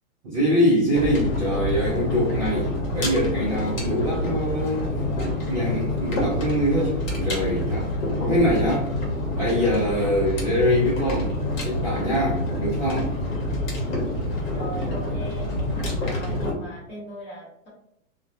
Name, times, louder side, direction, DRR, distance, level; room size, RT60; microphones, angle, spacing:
voice 1, 0.2-4.8 5.5-7.9 8.2-8.9 9.3-11.4 11.6-13.1, equal, 25° right, -9 dB, 0.4 m, -23 dB
sound 1, 0.9-16.5, left 1 dB, 65° left, 1.0 m, -27 dB
voice 2, 14.5-15.5 16.0-17.7, equal, 20° left, -7 dB, 0.9 m, -38 dB
2.2 x 2.2 x 2.7 m, 0.76 s
hypercardioid pair, 165°, 42 cm